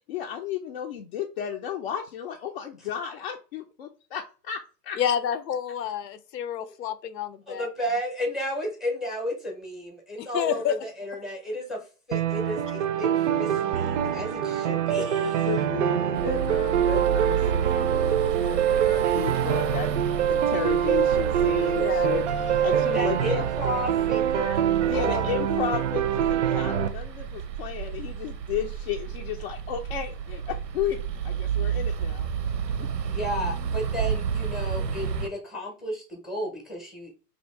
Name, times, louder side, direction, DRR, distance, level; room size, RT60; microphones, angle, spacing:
voice 1, 0.1-5.0 15.2-19.9 20.3-22.2 22.6-23.5 24.8-31.0 31.2-32.3 32.8-32.9, left 8 dB, 40° left, 0.4 m, -33 dB
voice 2, 5.0-7.7 10.2-10.8 17.5-17.9 21.8-22.2, left 8 dB, 85° left, 0.6 m, -29 dB
voice 3, 7.5-15.5 22.7-25.2 33.1-37.2, equal, ahead, 0.7 m, -33 dB
sound 1, 12.1-26.9, right 10 dB, 50° right, 0.5 m, -25 dB
sound 2, 16.1-35.3, right 7 dB, 90° right, 0.8 m, -32 dB
2.7 x 2.7 x 4.3 m
hypercardioid pair, 135°, 48 cm